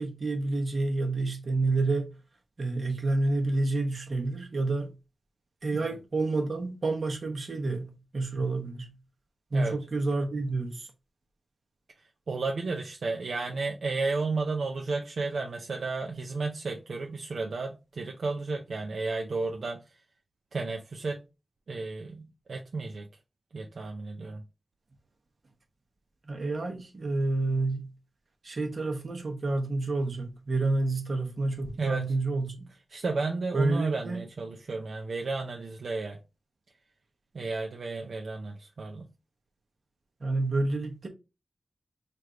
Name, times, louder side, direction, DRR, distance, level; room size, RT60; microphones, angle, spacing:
voice 1, 0.0-2.1 2.6-4.9 5.6-8.9 9.5-10.9 26.3-27.9 28.4-32.7 33.5-34.3 40.2-41.1, right 2 dB, 50° right, 0.9 m, -29 dB
voice 2, 12.3-19.8 20.5-21.2 21.7-23.1 23.5-24.4 31.8-32.0 32.9-36.2 37.3-39.1, right 3 dB, 70° right, 0.5 m, -33 dB
3.3 x 2.5 x 4.3 m
wide cardioid pair, 130°, 0 cm